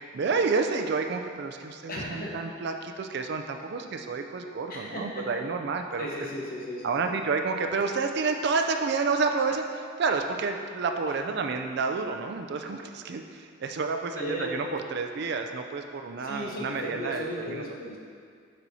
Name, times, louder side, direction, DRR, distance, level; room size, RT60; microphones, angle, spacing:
voice 1, 0.0-6.1 6.8-17.6, right 4 dB, 55° right, 5 dB, 0.4 m, -29 dB
voice 2, 1.9-2.4 4.7-5.3 6.0-7.1 14.1-14.5 16.2-18.0, equal, 45° left, -4 dB, 1.0 m, -35 dB
9.0 x 4.3 x 2.7 m, 2.2 s
head